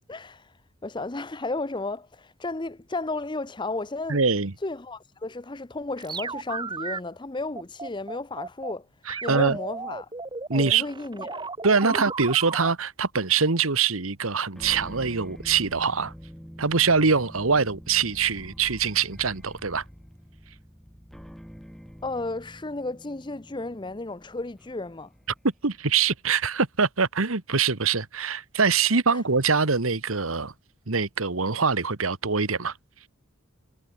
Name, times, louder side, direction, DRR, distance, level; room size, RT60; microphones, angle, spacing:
voice 1, 0.1-0.5 0.8-4.2 4.6-8.9 9.2-10.1 10.5-11.4 22.0-25.1 29.1-29.2, left 2 dB, 20° left, 0.7 m, -33 dB
voice 2, 4.1-4.5 9.1-9.6 10.5-10.8 11.6-16.1 16.6-19.8 25.6-30.5 30.9-32.7, right 5 dB, 85° right, 1.5 m, -24 dB
sound 1, 6.0-7.0 7.6-8.7 9.1-12.7, right 4 dB, 20° right, 0.9 m, -34 dB
sound 2, 14.5-25.9, equal, ahead, 3.5 m, -46 dB
head